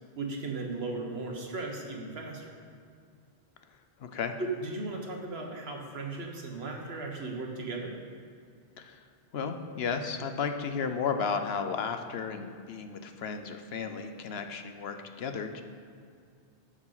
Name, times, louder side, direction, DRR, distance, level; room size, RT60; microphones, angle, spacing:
voice 1, 0.2-2.5 4.4-7.9, right 3 dB, 65° right, 1 dB, 1.5 m, -36 dB
voice 2, 4.0-4.3 8.8-9.0 9.3-15.6, left 5 dB, 70° left, 7 dB, 1.0 m, -33 dB
10.0 x 7.4 x 5.7 m, 2.3 s
omnidirectional pair, 1.1 m